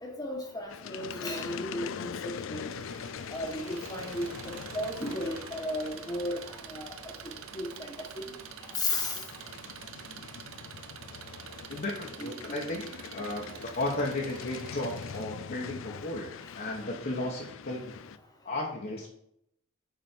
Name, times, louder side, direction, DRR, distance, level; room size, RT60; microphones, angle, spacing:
voice 1, 0.0-2.7 3.3-6.4 6.7-6.9 7.5-7.7 8.8-9.2 12.2-12.7, left 1 dB, 20° left, 0 dB, 1.3 m, -34 dB
sound 1, 0.7-18.2, left 7 dB, 65° left, 0.4 m, -43 dB
Engine, 2.7-15.2, right 7 dB, 70° right, 0.7 m, -46 dB
voice 2, 11.7-17.9 18.4-19.1, left 2 dB, 45° left, -2 dB, 1.1 m, -34 dB
9.1 x 4.3 x 4.5 m, 0.73 s
head